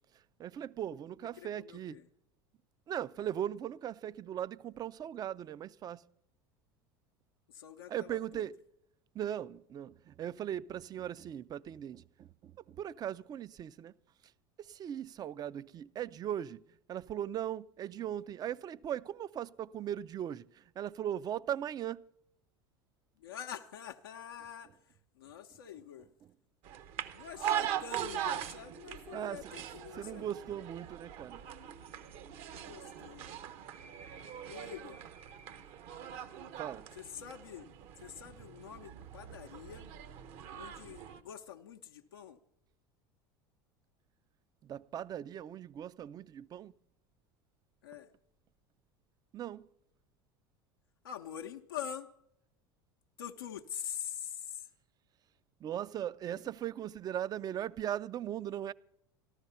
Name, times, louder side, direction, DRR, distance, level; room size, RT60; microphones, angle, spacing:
voice 1, 0.4-2.0 2.9-6.0 7.9-8.5 9.1-13.9 14.7-16.6 16.9-20.4 20.8-22.0 29.1-29.4 30.0-31.4 36.6-36.9 44.7-46.7 49.3-49.7 55.6-58.7, right 10 dB, 35° right, 0.4 m, -38 dB
voice 2, 1.4-2.0 3.2-3.3 7.5-8.4 23.2-26.1 27.1-30.6 32.4-33.4 34.5-35.0 36.9-37.7 38.0-39.9 40.5-42.4 47.8-48.1 51.0-52.1 53.2-54.7 56.4-56.5, left 9 dB, 85° left, 0.6 m, -45 dB
sound 1, 26.6-41.2, right 10 dB, 55° right, 0.9 m, -41 dB
13.5 x 12.5 x 5.6 m
hypercardioid pair, 80°, 12 cm